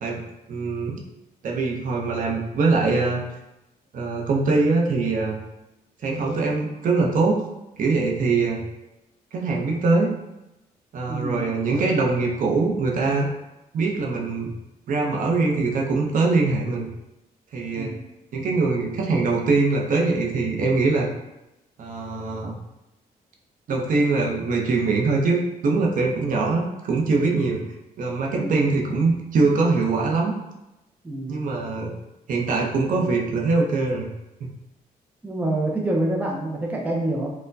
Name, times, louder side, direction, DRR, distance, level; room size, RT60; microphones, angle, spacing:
voice 1, 0.5-1.0 1.4-3.2 3.9-5.4 6.0-7.4 7.8-8.6 9.3-10.1 10.9-13.3 13.7-14.5 14.9-16.9 17.5-17.9 18.3-21.1 21.8-22.6 23.7-27.6 28.0-30.3 31.3-31.9 32.3-34.1, right 3 dB, 55° right, 0 dB, 0.6 m, -22 dB
voice 2, 11.1-11.5 17.7-18.0 28.3-28.6 31.0-31.5 35.2-37.3, right 1 dB, 10° right, -1 dB, 0.5 m, -27 dB
4.3 x 2.1 x 2.5 m, 0.94 s
cardioid pair, 125°, 16 cm